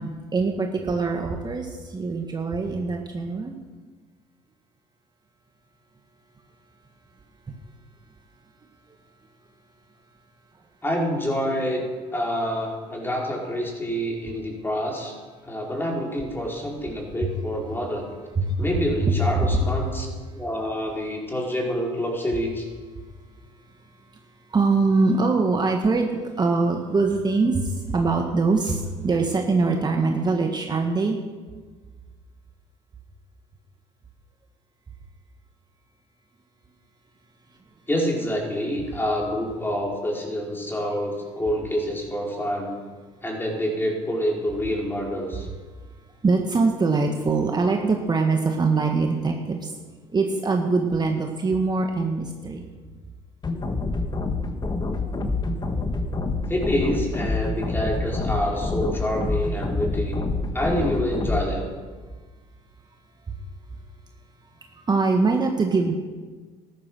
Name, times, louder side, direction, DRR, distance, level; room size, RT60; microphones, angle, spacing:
voice 1, 0.0-3.6 18.4-18.5 19.0-19.6 24.5-31.2 40.9-41.0 42.3-42.4 46.2-49.7 50.1-52.6 55.0-55.1 55.8-55.9 64.8-65.9, right 3 dB, 30° right, 2 dB, 1.7 m, -23 dB
voice 2, 10.8-15.1 15.4-18.1 18.6-20.1 20.3-22.7 37.9-42.8 43.2-45.5 56.5-60.2 60.5-61.7, equal, 15° left, -1 dB, 4.9 m, -27 dB
sound 1, 53.4-61.4, left 3 dB, 30° left, 1.8 m, -27 dB
13.5 x 11.5 x 6.3 m, 1.4 s
supercardioid pair, 75°, 14 cm